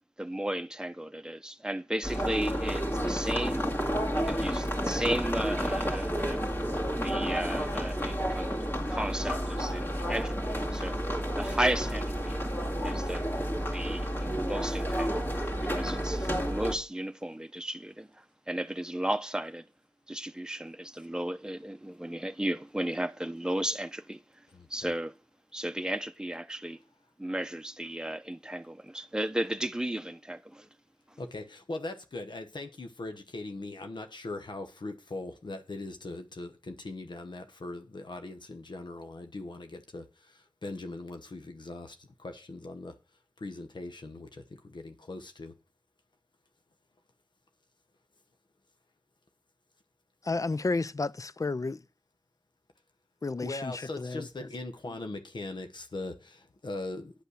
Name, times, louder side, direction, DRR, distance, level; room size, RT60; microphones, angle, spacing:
voice 1, 0.2-3.6 4.1-6.4 7.0-8.5 8.9-11.0 11.4-12.4 12.8-13.3 13.7-15.3 15.6-18.1 18.5-19.6 20.1-24.2 24.7-25.1 25.5-26.8 27.2-30.7, right 1 dB, 10° right, 0.8 m, -34 dB
sound 1, 2.0-16.7, equal, 30° left, 2.3 m, -31 dB
voice 2, 24.5-24.9 31.2-42.9 43.4-45.5 53.4-57.2, left 2 dB, 80° left, 1.1 m, -40 dB
voice 3, 50.2-51.8 53.2-54.5, left 3 dB, 45° left, 0.5 m, -32 dB
10.5 x 5.5 x 6.3 m
wide cardioid pair, 50°, 8 cm